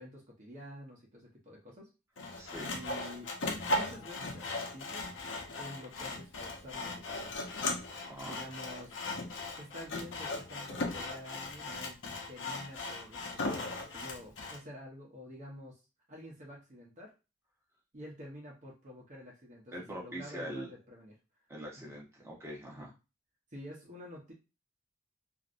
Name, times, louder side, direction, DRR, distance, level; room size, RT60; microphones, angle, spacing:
voice 1, 0.0-1.9 2.7-3.3 3.7-5.1 5.6-7.3 8.2-9.0 9.6-12.0 12.3-15.8 16.1-17.1 17.9-21.2 22.7-22.9 23.5-24.3, equal, 40° right, -3 dB, 0.9 m, -48 dB
Sawing, 2.2-14.6, left 2 dB, 70° left, 0.8 m, -38 dB
voice 2, 2.4-2.7 8.1-8.4 19.7-20.7 21.5-22.9, equal, 15° right, -4 dB, 1.0 m, -43 dB
3.0 x 2.6 x 2.5 m, 0.28 s
head